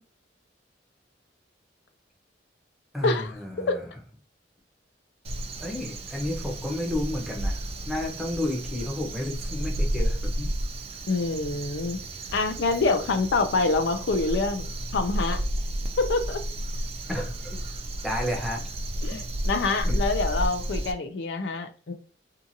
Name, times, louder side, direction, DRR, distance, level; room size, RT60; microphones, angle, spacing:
voice 1, 2.9-3.9 5.6-10.5 17.1-17.6 18.0-18.6 19.1-19.2 19.8-20.0, left 1 dB, ahead, 0.7 m, -31 dB
Crow, 5.2-20.9, right 1 dB, 35° right, 0.3 m, -32 dB
voice 2, 11.1-12.0 12.3-14.7 14.9-15.4 16.0-16.4 19.0-21.9, left 3 dB, 65° left, 0.4 m, -26 dB
2.7 x 2.4 x 2.6 m
head